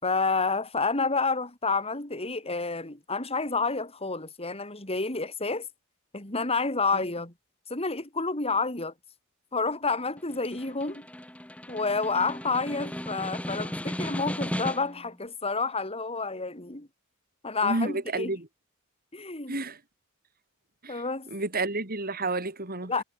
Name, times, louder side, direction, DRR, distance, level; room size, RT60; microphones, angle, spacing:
voice 1, 0.0-5.7 6.1-7.3 7.7-8.9 9.5-11.1 11.7-16.9 17.4-18.3 19.1-19.6 20.9-21.3 22.9-23.0, left 4 dB, 30° left, 4.6 m, -29 dB
Snare drum, 10.2-15.1, equal, 5° left, 1.8 m, -35 dB
voice 2, 17.6-18.5 19.5-19.8 20.8-21.0 21.3-23.0, right 2 dB, 45° right, 4.6 m, -30 dB
head